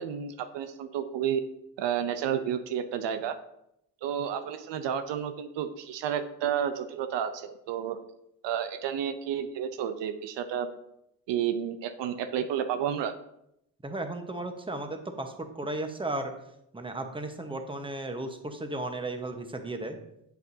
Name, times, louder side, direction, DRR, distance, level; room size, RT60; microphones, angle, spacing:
voice 1, 0.0-1.4 1.8-3.4 4.0-8.0 8.4-10.7 11.3-13.1, right 9 dB, 80° right, 9 dB, 0.6 m, -31 dB
voice 2, 13.8-16.3 16.7-20.0, right 2 dB, 10° right, 5 dB, 1.0 m, -35 dB
7.9 x 6.9 x 2.7 m, 0.79 s
supercardioid pair, 55°, 43 cm